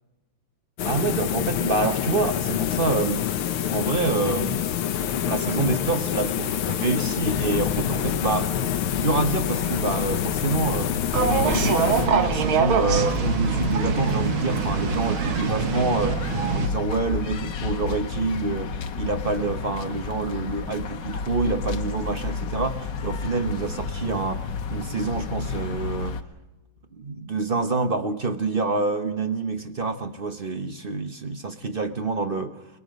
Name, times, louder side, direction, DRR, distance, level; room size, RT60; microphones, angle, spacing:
sound 1, 0.8-12.4, left 10 dB, 85° left, 1.8 m, -27 dB
voice 1, 0.8-3.3 3.7-4.6 5.3-8.5 8.9-10.9 11.3-16.2 16.5-26.2 26.9-32.6, right 3 dB, 35° right, 8 dB, 1.0 m, -27 dB
sound 2, 7.3-26.2, left 5 dB, 60° left, 1.7 m, -31 dB
sound 3, 11.1-16.7, right 6 dB, 75° right, 2.2 m, -24 dB
30.0 x 20.5 x 5.3 m, 1.1 s
omnidirectional pair, 2.3 m